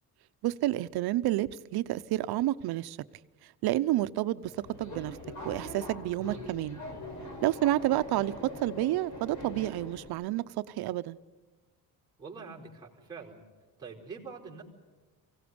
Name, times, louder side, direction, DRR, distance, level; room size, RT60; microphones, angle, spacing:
voice 1, 0.4-3.0 3.6-4.5 4.8-5.2 5.4-6.8 7.4-11.2, right 15 dB, 85° right, 0.8 m, -29 dB
Subway metro underground, 4.4-10.1, left 1 dB, 50° left, 5.1 m, -43 dB
voice 2, 12.2-13.4 13.8-14.6, right 5 dB, 10° right, 4.4 m, -45 dB
24.0 x 17.0 x 9.6 m
cardioid pair, 115°, 37 cm